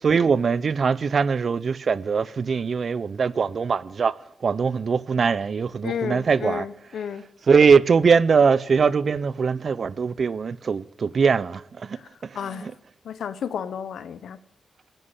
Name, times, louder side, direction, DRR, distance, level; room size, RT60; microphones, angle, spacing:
voice 1, 0.0-6.7 7.5-12.7, right 5 dB, 60° right, 0.7 m, -22 dB
voice 2, 5.8-7.3 12.0-12.1 12.3-12.7 13.0-14.4, left 8 dB, 85° left, 1.0 m, -32 dB
15.0 x 11.0 x 8.4 m
cardioid pair, 60°, 0 cm